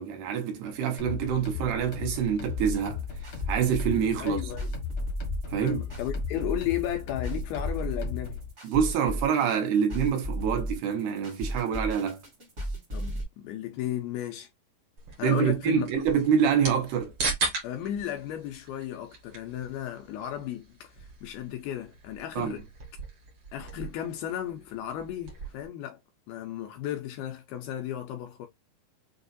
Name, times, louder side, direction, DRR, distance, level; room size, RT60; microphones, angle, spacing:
voice 1, 0.0-3.0 3.5-4.4 5.5-5.8 8.6-12.2 15.2-17.1 22.4-22.5, right 7 dB, 75° right, 2.9 m, -26 dB
sound 1, 1.0-8.5, left 7 dB, 60° left, 1.4 m, -37 dB
sound 2, 2.6-13.2, right 1 dB, 40° right, 1.0 m, -34 dB
voice 2, 4.2-4.7 5.6-8.4 12.9-14.5 15.2-15.9 17.6-22.6 23.5-26.0 26.3-28.5, left 11 dB, 80° left, 2.3 m, -34 dB
sound 3, 15.0-25.7, right 4 dB, 55° right, 1.5 m, -38 dB
6.6 x 2.4 x 2.6 m
omnidirectional pair, 4.8 m